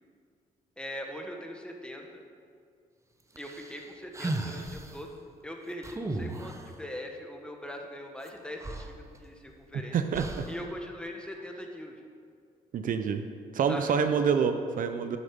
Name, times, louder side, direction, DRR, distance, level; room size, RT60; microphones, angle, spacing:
voice 1, 0.8-2.2 3.4-5.1 5.4-10.0 10.5-11.9 13.7-14.0, equal, 5° left, 2 dB, 1.4 m, -41 dB
sound 1, 3.4-5.0 5.8-6.8 8.3-8.4 8.6-9.6 10.1-10.7, right 2 dB, 20° right, 1.0 m, -36 dB
voice 2, 9.9-10.4 12.7-13.2 13.5-15.2, right 6 dB, 65° right, 8 dB, 0.7 m, -27 dB
11.0 x 8.2 x 5.2 m, 2.2 s
cardioid pair, 95°, 15 cm